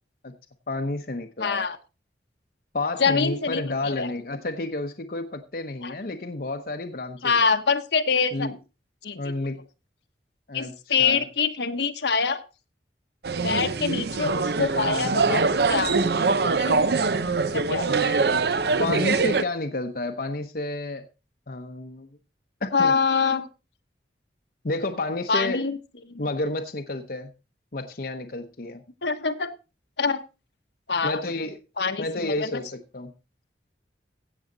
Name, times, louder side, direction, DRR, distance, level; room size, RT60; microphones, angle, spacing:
voice 1, 0.7-1.7 2.7-7.5 8.3-8.6 9.1-9.6 10.5-11.2 18.8-21.0 21.5-22.1 22.6-22.9 24.6-25.7 26.2-27.3 27.7-28.8 31.0-31.6 32.0-33.1, left 2 dB, 55° left, 0.9 m, -30 dB
voice 2, 1.4-1.8 3.0-4.1 5.8-5.9 7.2-8.5 9.0-9.2 10.5-12.4 13.4-16.0 16.4-16.8 17.5-17.9 22.7-23.5 25.3-25.8 26.1-26.2 29.0-29.5 30.0-30.2 30.9-31.2 31.8-32.6, left 5 dB, 75° left, 1.2 m, -25 dB
sound 1, 13.2-19.4, right 4 dB, 60° right, 0.7 m, -23 dB
16.5 x 7.2 x 3.9 m
head